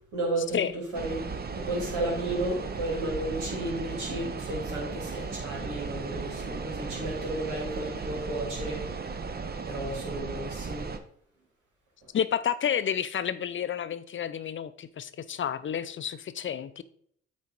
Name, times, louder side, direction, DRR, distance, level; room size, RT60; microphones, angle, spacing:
voice 1, 0.1-0.6 0.9-1.2 1.5-9.1 9.7-10.8, right 1 dB, 80° right, -2 dB, 3.3 m, -33 dB
sound 1, 0.9-11.0, right 4 dB, 30° right, 0.9 m, -36 dB
voice 2, 12.1-16.8, left 8 dB, 40° left, 13 dB, 0.6 m, -30 dB
8.5 x 4.2 x 4.6 m, 0.64 s
supercardioid pair, 55°, 29 cm